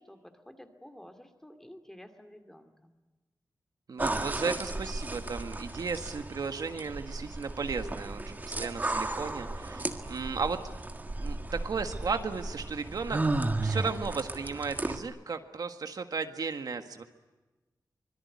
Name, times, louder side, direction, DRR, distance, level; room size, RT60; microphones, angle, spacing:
voice 1, 0.0-3.0, left 1 dB, 5° left, 6 dB, 2.4 m, -51 dB
voice 2, 3.9-10.6 11.2-13.3 13.6-17.0, right 5 dB, 65° right, 7 dB, 1.6 m, -35 dB
sound 1, 4.0-15.0, right 2 dB, 25° right, 1.7 m, -34 dB
25.0 x 22.0 x 9.6 m, 1.2 s
wide cardioid pair, 160°, 7 cm